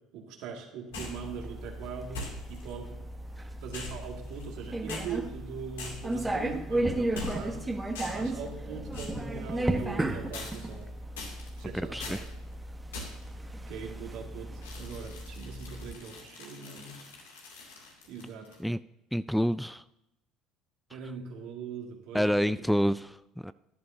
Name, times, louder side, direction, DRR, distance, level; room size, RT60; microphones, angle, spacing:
voice 1, 0.1-3.1 3.6-7.7 8.0-10.9 11.6-12.3 13.6-17.0 18.1-18.5 20.9-22.6, right 6 dB, 65° right, 1 dB, 2.1 m, -41 dB
sound 1, 0.9-1.2 2.1-2.7 3.7-4.6 4.9-5.1 5.8-6.2 7.1-7.6 7.9-8.3 8.9-9.2 10.3-10.8 11.2-11.6 12.0-12.3 12.9-13.3 14.6-18.6, left 3 dB, 85° left, 2.6 m, -42 dB
sound 2, 0.9-16.0, right 1 dB, 15° right, 1.2 m, -35 dB
voice 2, 11.7-12.2 18.6-18.8 19.1-19.8 22.1-23.5, equal, ahead, 16 dB, 0.3 m, -28 dB
14.0 x 11.0 x 2.8 m, 0.88 s
hypercardioid pair, 65°, 0 cm